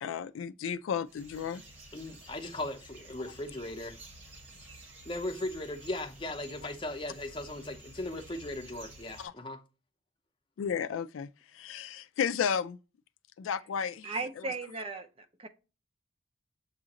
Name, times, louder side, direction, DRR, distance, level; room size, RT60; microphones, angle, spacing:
voice 1, 0.0-1.6 9.2-9.3 10.6-12.8 13.4-14.5, left 7 dB, 85° left, 0.3 m, -33 dB
sound 1, 1.0-9.3, right 1 dB, 80° right, 1.8 m, -52 dB
voice 2, 1.9-4.0 5.1-9.6, left 1 dB, 25° left, 0.6 m, -38 dB
voice 3, 14.0-15.5, right 3 dB, 30° right, 0.5 m, -37 dB
7.2 x 2.5 x 2.8 m
head